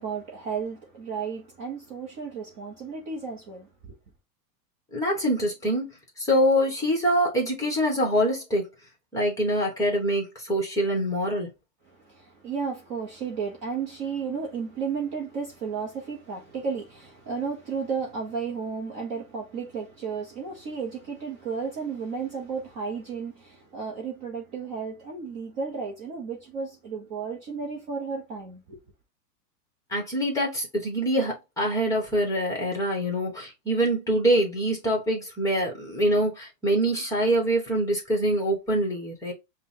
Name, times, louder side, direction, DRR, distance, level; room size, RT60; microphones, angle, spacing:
voice 1, 0.0-4.0 12.0-28.8, right 5 dB, 25° right, 0.7 m, -33 dB
voice 2, 4.9-5.9 6.2-8.7 9.1-11.5 29.9-39.3, equal, 5° left, 1.0 m, -25 dB
5.4 x 2.2 x 2.7 m
supercardioid pair, 155°, 50 cm